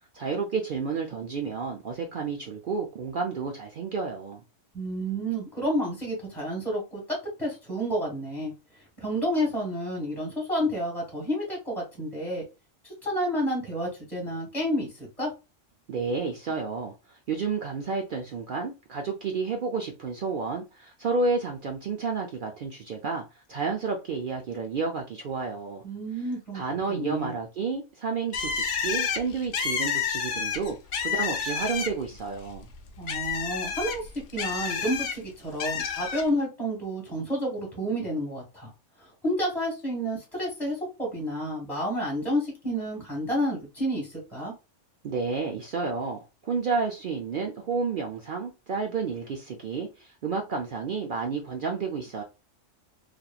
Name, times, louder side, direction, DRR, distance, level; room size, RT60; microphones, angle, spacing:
voice 1, 0.1-4.4 15.9-25.8 26.5-30.8 31.0-32.7 45.0-52.2, right 4 dB, 60° right, 0.5 m, -31 dB
voice 2, 4.7-8.5 9.0-12.4 12.8-15.3 25.8-26.6 26.9-27.3 33.0-38.7 39.0-44.5, equal, ahead, 1.4 m, -30 dB
Bird, 28.3-32.2 32.5-35.1 35.6-36.2, left 6 dB, 70° left, 0.9 m, -29 dB
2.9 x 2.5 x 2.2 m
omnidirectional pair, 1.3 m